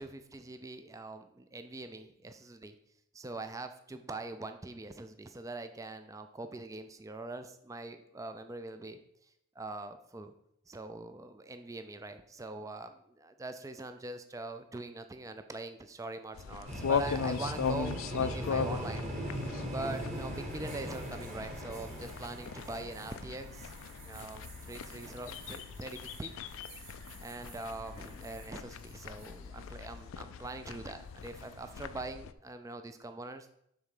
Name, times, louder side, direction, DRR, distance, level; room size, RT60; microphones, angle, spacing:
voice 1, 0.0-2.8 3.1-9.0 9.6-10.3 10.7-19.0 19.7-23.7 24.0-26.3 27.2-33.5, right 2 dB, 15° right, 8 dB, 0.3 m, -43 dB
sound 1, 16.3-32.3, left 6 dB, 65° left, 0.3 m, -39 dB
sound 2, 16.7-28.5 28.8-29.3 31.2-31.6, equal, 30° right, 1.4 m, -42 dB
6.9 x 3.8 x 6.4 m, 0.75 s
head